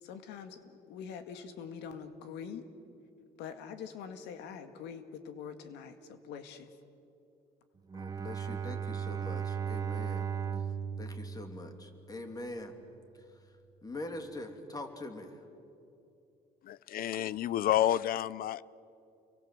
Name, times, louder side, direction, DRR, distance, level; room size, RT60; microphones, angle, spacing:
voice 1, 0.0-2.6 3.4-6.7, left 7 dB, 90° left, 8 dB, 2.1 m, -44 dB
voice 2, 7.9-10.2 10.6-10.7 11.0-12.7 13.8-15.4, left 2 dB, 20° left, 5 dB, 3.1 m, -43 dB
Bowed string instrument, 7.9-12.3, right 7 dB, 20° right, 1.4 m, -36 dB
voice 3, 16.6-18.6, left 12 dB, 60° left, 21 dB, 0.6 m, -30 dB
29.0 x 23.0 x 7.8 m, 2.7 s
cardioid pair, 110°, 17 cm